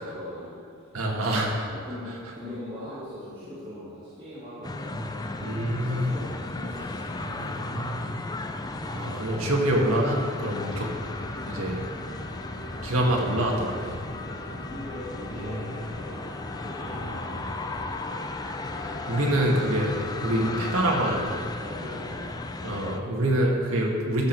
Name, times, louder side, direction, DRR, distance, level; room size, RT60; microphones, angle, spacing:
voice 1, 0.0-1.0 1.6-7.1 14.2-17.0 21.6-22.5, left 1 dB, 25° right, -14 dB, 2.8 m, -41 dB
voice 2, 0.9-1.7 4.9-5.0 5.4-6.1 7.2-8.2 8.8-10.9 11.5-11.9 12.8-14.0 15.4-15.6 16.8-17.8 19.1-21.5 22.6-24.3, right 1 dB, 80° right, -1 dB, 1.7 m, -26 dB
sound 1, 4.6-23.0, left 2 dB, 20° left, 0.5 m, -35 dB
sound 2, 10.3-21.2, left 2 dB, 55° left, 0.8 m, -43 dB
14.5 x 6.1 x 4.5 m, 2.2 s
head